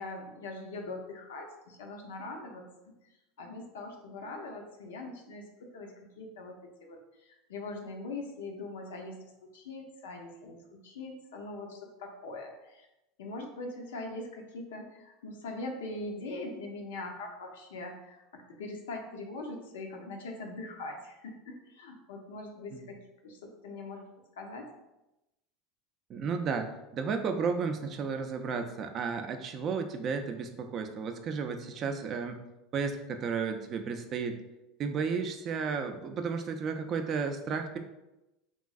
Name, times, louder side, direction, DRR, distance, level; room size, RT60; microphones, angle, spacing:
voice 1, 0.0-2.9 3.4-12.9 13.2-24.1 24.4-24.7, left 2 dB, 80° left, 2 dB, 0.5 m, -42 dB
voice 2, 26.1-32.4 32.7-34.4 34.8-37.8, right 5 dB, 45° right, 6 dB, 0.3 m, -33 dB
3.0 x 2.5 x 2.3 m, 0.96 s
hypercardioid pair, 85°, 0 cm